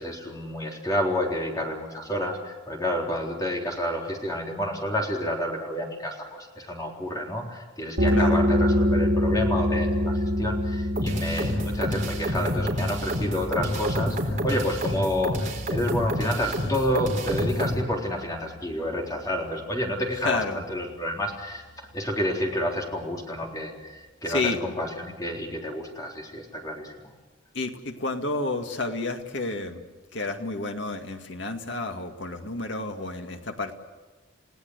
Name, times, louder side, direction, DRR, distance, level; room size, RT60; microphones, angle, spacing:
voice 1, 0.0-27.1, left 1 dB, 20° left, 0 dB, 3.9 m, -29 dB
sound 1, 8.0-19.3, left 1 dB, 55° right, 5.2 m, -27 dB
voice 2, 8.1-8.4 20.2-20.6 24.3-24.6 27.5-29.8 30.1-33.7, left 3 dB, 65° left, 5 dB, 2.1 m, -30 dB
sound 2, 11.0-17.8, equal, 40° right, 4.0 m, -28 dB
30.0 x 17.5 x 8.1 m, 1.2 s
head